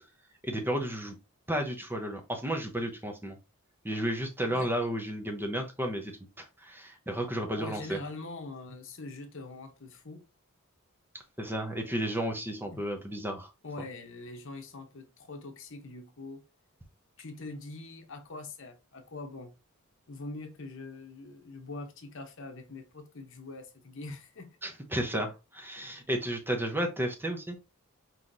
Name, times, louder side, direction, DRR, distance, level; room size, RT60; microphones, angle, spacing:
voice 1, 0.4-1.1 1.5-3.4 3.8-6.1 6.4-8.0 11.4-13.5 24.6-27.6, right 1 dB, 10° right, 0.8 m, -32 dB
voice 2, 7.6-10.2 12.7-12.8 13.6-16.4 17.2-19.6 20.1-24.5, left 3 dB, 60° left, 0.9 m, -43 dB
5.6 x 3.1 x 2.6 m
head